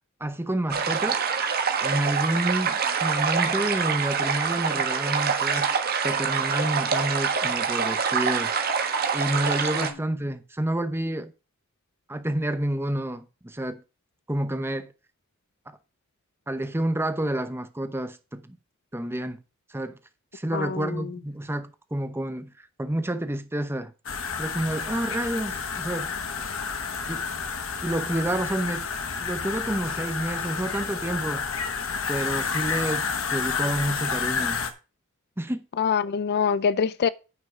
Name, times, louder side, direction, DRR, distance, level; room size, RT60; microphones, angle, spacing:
voice 1, 0.2-1.3 1.8-5.8 6.0-8.5 9.1-11.3 12.1-13.8 14.3-14.9 16.5-18.6 18.9-19.4 19.7-20.0 20.3-22.5 22.8-23.9 24.4-26.1 27.1-27.3 27.8-28.8 29.2-31.5 32.1-34.6 35.4-35.6, right 1 dB, 10° right, 0.8 m, -29 dB
sound 1, 0.7-9.9, right 6 dB, 45° right, 1.4 m, -25 dB
voice 2, 20.5-21.1 35.8-37.1, left 6 dB, 50° left, 0.4 m, -24 dB
sound 2, 24.1-34.7, left 5 dB, 70° left, 1.3 m, -30 dB
9.4 x 6.0 x 4.9 m
head